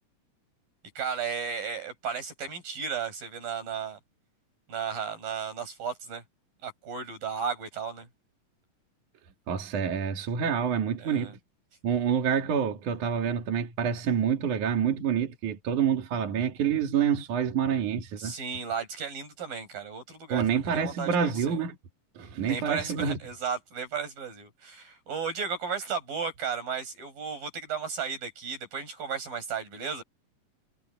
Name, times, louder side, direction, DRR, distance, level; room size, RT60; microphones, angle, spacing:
voice 1, 1.0-4.0 4.7-6.2 6.6-8.1 11.0-11.3 18.2-21.6 22.5-30.0, right 6 dB, 80° right, 9.1 m, -34 dB
voice 2, 9.5-11.4 11.8-18.4 20.3-21.8 22.2-23.2, right 7 dB, 60° right, 3.6 m, -27 dB
omnidirectional pair, 4.0 m